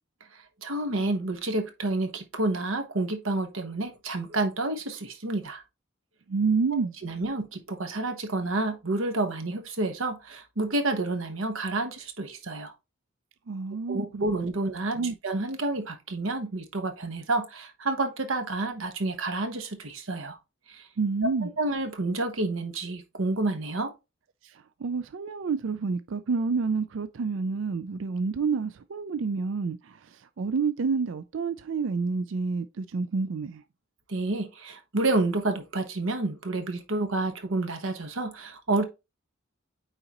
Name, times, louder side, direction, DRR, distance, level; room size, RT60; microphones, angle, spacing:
voice 1, 0.6-5.6 7.0-12.7 13.9-20.4 20.7-20.9 21.2-23.9 34.1-38.8, right 2 dB, 85° right, 1.2 m, -29 dB
voice 2, 6.3-6.9 13.5-14.3 14.9-15.1 21.0-21.5 24.4-33.6, right 4 dB, 70° right, 0.4 m, -29 dB
8.9 x 3.9 x 3.0 m
head